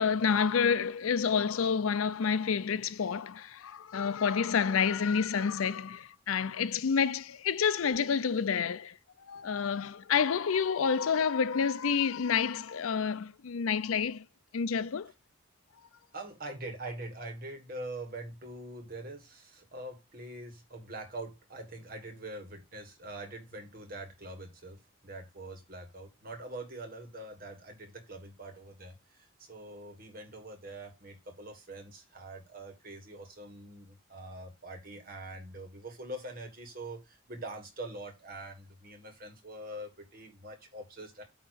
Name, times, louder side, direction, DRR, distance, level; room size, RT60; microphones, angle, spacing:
voice 1, 0.0-9.0 9.3-14.3 14.5-15.1, left 6 dB, 85° left, 0.5 m, -29 dB
voice 2, 16.1-41.2, right 1 dB, 45° right, 1.6 m, -44 dB
8.8 x 3.0 x 6.4 m
head